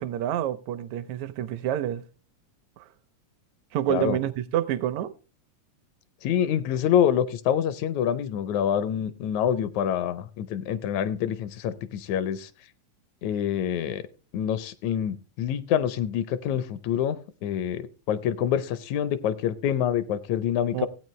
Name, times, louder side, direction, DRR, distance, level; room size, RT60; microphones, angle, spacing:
voice 1, 0.0-2.0 2.8-2.9 3.7-5.1 20.7-20.9, right 11 dB, 80° right, 1.9 m, -28 dB
voice 2, 6.2-12.5 13.2-14.0 14.3-20.9, left 9 dB, 80° left, 1.9 m, -26 dB
15.5 x 8.5 x 3.1 m
omnidirectional pair, 3.4 m